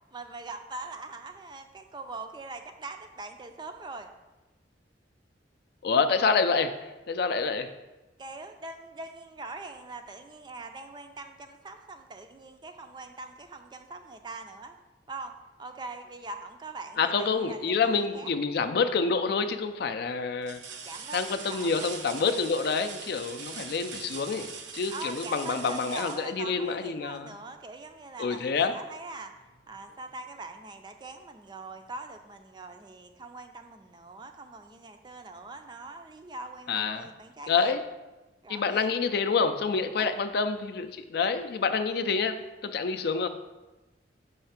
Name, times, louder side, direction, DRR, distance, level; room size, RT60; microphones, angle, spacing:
voice 1, 0.1-4.1 8.2-14.8 15.1-15.3 15.6-18.3 20.9-21.9 24.9-29.3 29.7-37.7 38.4-38.9 40.0-40.2 42.9-43.1, right 3 dB, 25° right, 6 dB, 0.4 m, -42 dB
voice 2, 5.8-7.7 17.0-20.6 21.1-27.3 28.2-28.7 36.7-37.1 37.5-37.8 38.5-43.3, left 5 dB, 55° left, 9 dB, 0.4 m, -27 dB
sound 1, 19.1-19.2 19.7-19.8 20.4-27.1 28.9-29.0 29.5-30.5 31.8-31.9, right 6 dB, 75° right, 0.6 m, -43 dB
5.6 x 3.3 x 5.7 m, 1.1 s
head